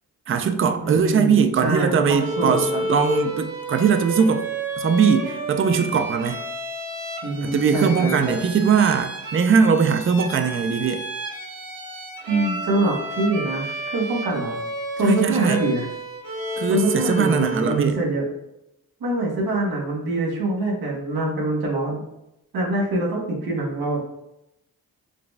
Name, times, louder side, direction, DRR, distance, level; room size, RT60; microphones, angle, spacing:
voice 1, 0.3-4.5 4.8-6.4 7.4-11.0 15.0-15.6 16.6-18.0, right 6 dB, 35° right, 7 dB, 0.4 m, -20 dB
voice 2, 0.8-2.8 7.2-8.4 12.3-14.6 15.0-15.9 16.7-18.3 19.0-22.0 22.5-24.0, right 2 dB, 85° right, -2 dB, 1.2 m, -24 dB
Bowed string instrument, 2.1-17.9, right 1 dB, 70° right, 0.9 m, -31 dB
4.9 x 2.3 x 3.3 m, 0.87 s
cardioid pair, 75°, 36 cm